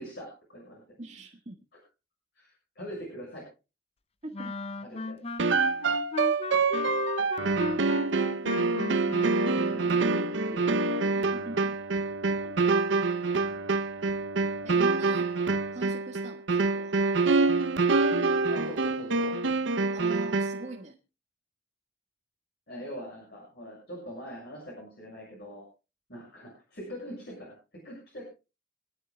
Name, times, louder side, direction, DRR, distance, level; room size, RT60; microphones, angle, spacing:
voice 1, 0.0-0.8 2.4-3.5 4.8-5.2 9.5-11.5 18.5-19.4 22.7-25.6 26.1-28.3, equal, 60° left, -3 dB, 6.7 m, -43 dB
voice 2, 1.0-1.6 4.2-4.5 11.3-11.7 12.4-12.8 14.6-15.3 15.7-17.0 19.9-21.0, right 2 dB, 40° right, 0 dB, 1.7 m, -42 dB
sound 1, 4.3-10.0, left 4 dB, 35° left, 0.7 m, -36 dB
sound 2, 5.4-20.7, right 3 dB, 85° right, 0.7 m, -26 dB
26.5 x 10.5 x 2.3 m, 0.30 s
head